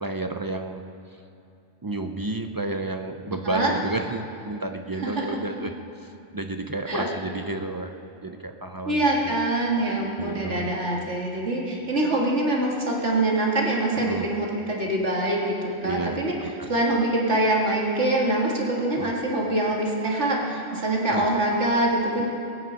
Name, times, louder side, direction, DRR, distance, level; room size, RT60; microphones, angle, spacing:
voice 1, 0.0-0.8 1.8-7.9 8.2-9.4 10.2-10.7 14.0-14.3 15.8-16.7 19.0-19.1 21.0-21.2, right 2 dB, 35° right, 5 dB, 0.3 m, -31 dB
voice 2, 5.0-5.4 6.9-7.0 8.9-16.3 16.7-22.3, right 1 dB, 70° right, -2 dB, 2.3 m, -24 dB
20.5 x 9.2 x 5.2 m, 2.7 s
omnidirectional pair, 1.3 m